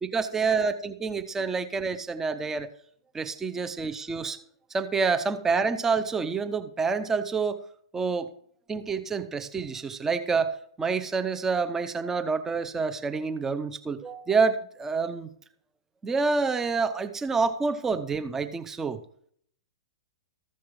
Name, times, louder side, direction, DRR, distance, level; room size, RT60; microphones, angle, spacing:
voice 1, 0.0-2.7 3.1-4.4 4.7-7.6 7.9-8.3 8.7-15.3 16.0-19.0, right 4 dB, 15° right, 9 dB, 0.8 m, -27 dB
14.0 x 5.8 x 4.7 m, 0.63 s
hypercardioid pair, 115°, 3 cm